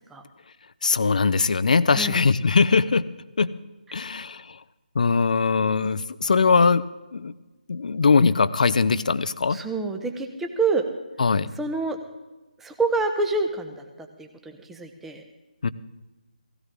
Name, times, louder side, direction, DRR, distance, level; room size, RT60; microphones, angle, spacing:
voice 1, 0.8-3.1 3.4-3.5 3.9-4.6 4.9-6.8 7.1-7.3 7.7-9.6 11.2-11.5 15.6-15.7, left 4 dB, 55° left, 16 dB, 0.7 m, -21 dB
voice 2, 1.9-2.2 9.5-10.8 11.6-12.0 12.6-15.2, right 3 dB, 5° right, 5 dB, 0.9 m, -27 dB
17.0 x 16.0 x 3.7 m, 1.1 s
figure-of-eight pair, 155°, 5 cm